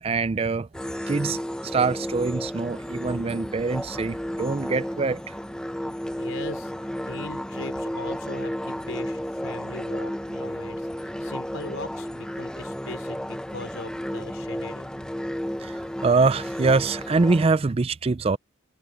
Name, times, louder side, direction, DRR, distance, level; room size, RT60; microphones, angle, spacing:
voice 1, 0.0-0.7 1.1-5.3 15.6-18.4, right 4 dB, 30° right, 0.4 m, -24 dB
sound 1, 0.7-17.5, equal, 5° left, 0.7 m, -33 dB
voice 2, 6.2-14.9, left 2 dB, 75° left, 3.8 m, -40 dB
head